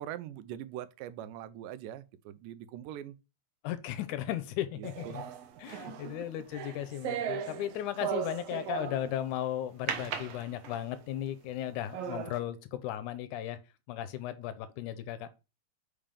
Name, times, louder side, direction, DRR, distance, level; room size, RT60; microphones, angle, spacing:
voice 1, 0.0-3.2 4.8-5.4, right 11 dB, 90° right, 2.2 m, -42 dB
voice 2, 3.6-5.2 5.6-13.6 13.9-15.3, left 12 dB, 80° left, 2.0 m, -36 dB
sound 1, 4.8-9.2 9.9-11.0 11.5-11.6 11.9-12.4, right 8 dB, 70° right, 1.5 m, -37 dB
5.5 x 3.4 x 5.2 m
omnidirectional pair, 3.7 m